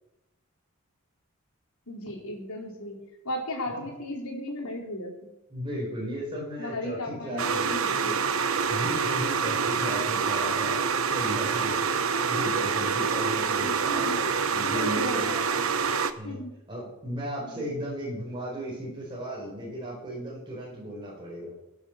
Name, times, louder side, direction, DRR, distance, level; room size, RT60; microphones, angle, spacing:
voice 1, 1.9-5.3 6.6-8.4 13.6-15.7 16.2-16.5 17.4-17.8, left 1 dB, 85° left, 0 dB, 4.4 m, -36 dB
voice 2, 5.5-7.7 8.0-8.2 8.7-15.3 16.2-16.4 16.7-21.5, equal, 20° right, -5 dB, 4.8 m, -35 dB
sound 1, 7.4-16.1, right 5 dB, 70° right, 1.0 m, -26 dB
17.5 x 10.5 x 6.7 m, 0.96 s
head